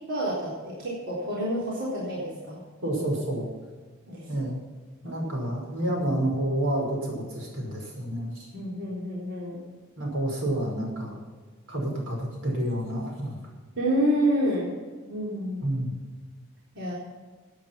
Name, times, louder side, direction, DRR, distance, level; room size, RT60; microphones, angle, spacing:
voice 1, 0.1-2.6 4.1-4.5 5.0-5.3 8.5-9.6 13.8-14.7 15.1-15.7 16.8-16.9, equal, 60° right, -6 dB, 3.9 m, -28 dB
voice 2, 2.8-3.5 4.3-4.6 5.0-8.5 10.0-11.2 11.7-13.4 15.6-15.9, right 1 dB, 80° right, -1 dB, 5.5 m, -29 dB
17.0 x 8.9 x 5.8 m, 1.5 s
head